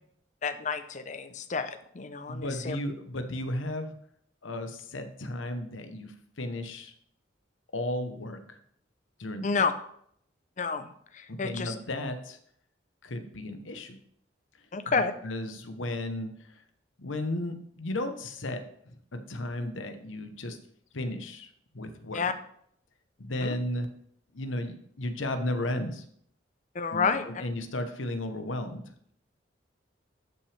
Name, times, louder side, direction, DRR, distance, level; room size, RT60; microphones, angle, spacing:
voice 1, 0.4-2.8 9.4-9.7 10.6-11.7 14.7-15.1 22.1-22.3 23.4-23.6 26.7-27.4, left 5 dB, 40° left, 11 dB, 0.6 m, -30 dB
voice 2, 2.3-4.0 4.4-6.9 7.7-8.6 9.2-9.5 11.3-12.4 13.0-14.0 14.9-16.6 17.0-20.6 20.9-21.5 21.7-22.3 23.2-23.9 24.3-26.0 26.9-28.8, left 1 dB, 85° left, 8 dB, 1.0 m, -34 dB
12.0 x 6.0 x 3.4 m, 0.66 s
head